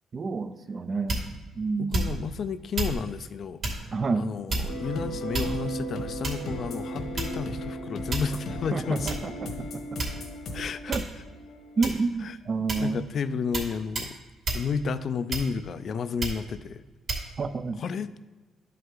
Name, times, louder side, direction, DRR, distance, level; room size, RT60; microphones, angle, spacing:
voice 1, 0.1-1.2 1.6-2.1 3.9-4.3 8.7-9.8 10.9-11.1 11.8-13.0 17.4-17.8, right 4 dB, 40° right, 11 dB, 0.5 m, -29 dB
sound 1, 1.1-1.4 1.9-2.3 2.7-3.0 3.6-3.8 4.5-4.9 5.3-5.8 6.2-6.5 7.2-7.5 8.1-8.4 9.1-9.2 10.0-10.4 10.9-11.2 11.8-12.2 12.7-12.9 13.5-13.7 13.9-14.1 14.4-14.7 15.3-15.7 16.2-16.4 17.1-17.3, right 2 dB, 55° right, 2.5 m, -30 dB
voice 2, 1.8-3.9 4.1-9.1 10.5-10.9 12.2-12.4 12.8-14.2 14.5-16.8 17.7-18.2, left 6 dB, 55° left, 13 dB, 0.4 m, -32 dB
sound 2, 4.7-12.0, equal, 75° left, 1.3 m, -36 dB
11.5 x 5.5 x 3.8 m, 1.2 s
cardioid pair, 90°, 0 cm